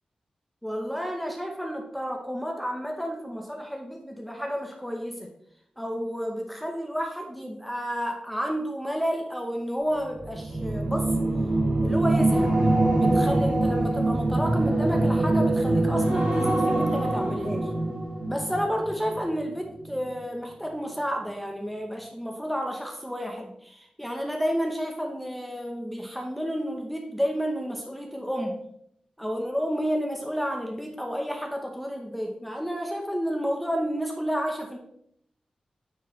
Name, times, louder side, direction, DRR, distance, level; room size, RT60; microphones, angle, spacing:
voice 1, 0.6-5.3 5.8-11.1 11.8-12.5 12.9-17.7 18.3-28.6 29.2-34.8, equal, ahead, 2 dB, 0.8 m, -31 dB
sound 1, 10.1-19.5 19.8-20.1, right 2 dB, 80° right, 2.0 m, -24 dB
9.1 x 4.6 x 3.1 m, 0.73 s
wide cardioid pair, 135°, 2 cm